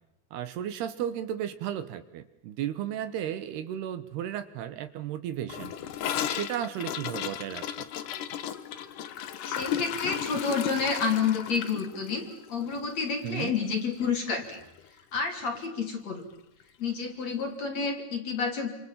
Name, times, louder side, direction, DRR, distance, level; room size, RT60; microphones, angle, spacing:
voice 1, 0.3-5.7 6.2-7.9 13.2-13.6, right 10 dB, 75° right, 11 dB, 3.2 m, -34 dB
Gurgling / Toilet flush, 5.5-13.8 14.0-14.2 14.4-14.9 15.2-15.3 15.5-15.6 16.6-16.7, left 10 dB, 65° left, 2.2 m, -35 dB
voice 2, 9.5-14.6 15.1-16.3 16.8-18.7, left 5 dB, 40° left, 4 dB, 4.0 m, -29 dB
28.5 x 27.5 x 7.5 m, 0.83 s
omnidirectional pair, 5.0 m